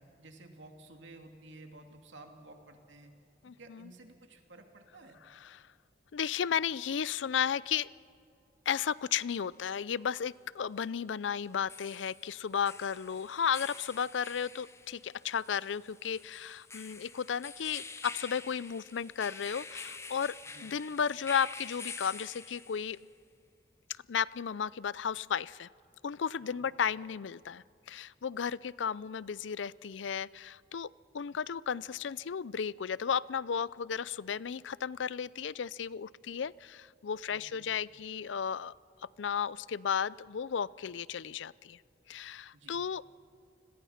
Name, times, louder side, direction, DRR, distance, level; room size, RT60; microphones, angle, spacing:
voice 1, 0.0-3.1 3.6-5.2 20.5-20.7 26.4-26.6 37.3-37.7 42.5-42.8, right 2 dB, 90° right, 4 dB, 2.7 m, -53 dB
voice 2, 3.4-3.9 5.4-5.7 6.1-7.9 8.7-20.3 20.6-23.0 24.1-25.7 26.0-30.9 31.1-38.7 39.2-41.8 42.1-43.0, left 7 dB, 85° left, 21 dB, 0.5 m, -34 dB
sound 1, 11.4-23.0, left 4 dB, 15° left, 0.9 m, -47 dB
29.0 x 21.5 x 5.8 m, 2.5 s
head